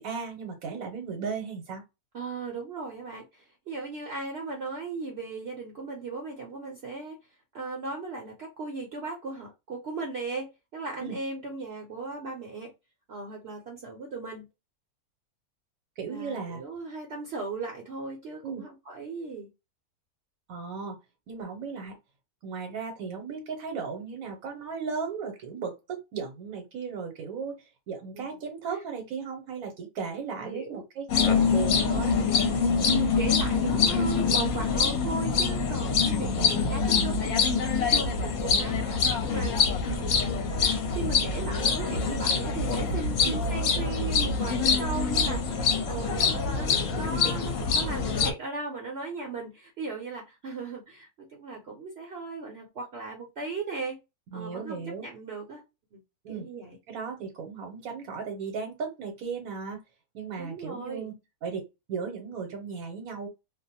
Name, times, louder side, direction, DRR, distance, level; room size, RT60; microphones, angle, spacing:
voice 1, 0.0-1.8 11.0-11.2 16.0-16.6 18.4-18.6 20.5-21.0 21.3-21.9 22.4-32.2 43.2-43.4 54.3-55.1 56.2-56.5 56.9-59.8 60.1-61.1 61.4-61.6 61.9-63.3, right 5 dB, 70° right, 1.1 m, -36 dB
voice 2, 2.1-7.2 7.5-12.7 13.1-14.4 16.1-19.5 28.1-28.3 30.4-30.8 32.8-39.6 39.9-40.2 40.9-54.0 54.3-55.6 55.9-56.0 56.3-56.8 60.4-61.1, right 3 dB, 55° right, 0.8 m, -37 dB
sound 1, 31.1-48.3, left 5 dB, 65° left, 0.9 m, -25 dB
2.5 x 2.0 x 2.7 m
omnidirectional pair, 1.6 m